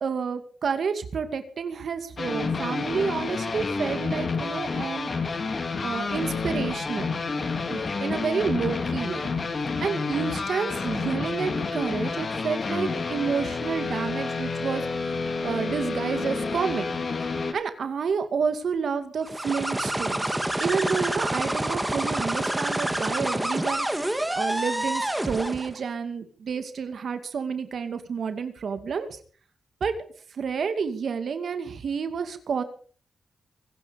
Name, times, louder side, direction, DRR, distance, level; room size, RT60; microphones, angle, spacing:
voice 1, 0.0-5.1 5.8-7.1 7.7-9.3 9.8-14.9 15.4-17.0 17.5-20.3 20.6-29.2 29.8-29.9 30.3-32.6, right 6 dB, 65° right, 9 dB, 2.4 m, -29 dB
sound 1, 2.2-17.5, left 4 dB, 45° left, 3.0 m, -29 dB
sound 2, 19.2-25.8, right 1 dB, 10° right, 2.4 m, -28 dB
24.5 x 11.0 x 5.3 m, 0.44 s
cardioid pair, 90°, 0 cm